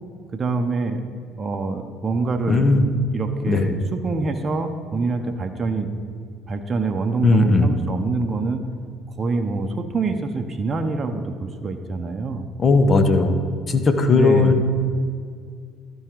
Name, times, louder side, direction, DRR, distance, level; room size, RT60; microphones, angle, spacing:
voice 1, 0.3-1.0 1.4-2.6 3.1-5.9 6.5-8.6 9.2-12.5 14.1-14.6, right 3 dB, 35° right, 5 dB, 0.7 m, -25 dB
voice 2, 2.5-2.8 3.5-3.6 7.2-7.7 12.6-13.4 13.7-14.6, left 3 dB, 40° left, 8 dB, 0.9 m, -17 dB
13.0 x 4.8 x 4.7 m, 2.2 s
hypercardioid pair, 60°, 0 cm